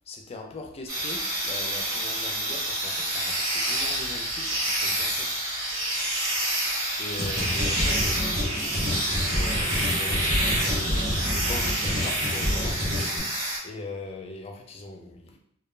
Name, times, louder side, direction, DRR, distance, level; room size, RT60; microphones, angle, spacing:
voice 1, 0.1-5.3 7.0-8.2 9.3-12.9 13.6-15.4, left 2 dB, 30° left, 0.3 m, -40 dB
sound 1, 0.9-13.6, right 1 dB, 60° right, 1.0 m, -28 dB
sound 2, 1.8-12.7, right 2 dB, 40° right, 0.6 m, -44 dB
sound 3, 7.2-13.2, equal, 90° right, 0.8 m, -29 dB
2.2 x 2.1 x 3.1 m
head